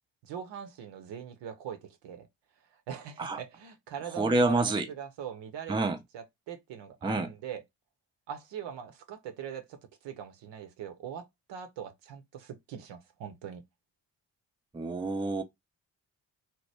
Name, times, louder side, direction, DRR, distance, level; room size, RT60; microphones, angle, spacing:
voice 1, 0.2-2.3 2.9-5.8 6.1-7.6 8.3-9.8 10.0-11.2 11.5-13.6, right 8 dB, 60° right, 0.8 m, -41 dB
voice 2, 4.1-4.9 5.7-6.0 7.0-7.3 14.7-15.4, right 2 dB, 10° right, 0.6 m, -28 dB
2.9 x 2.1 x 3.3 m
hypercardioid pair, 45°, 49 cm